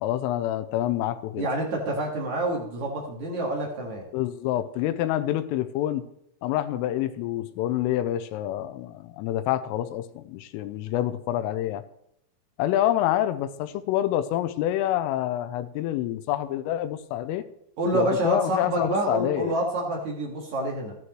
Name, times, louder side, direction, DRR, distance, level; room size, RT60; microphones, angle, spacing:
voice 1, 0.0-1.5 4.1-6.0 6.4-11.8 12.6-17.4 17.9-19.5, left 12 dB, 85° left, 10 dB, 3.2 m, -27 dB
voice 2, 1.4-4.1 17.8-21.0, right 1 dB, 60° right, 0 dB, 2.0 m, -27 dB
13.5 x 11.0 x 3.1 m, 0.75 s
omnidirectional pair, 6.0 m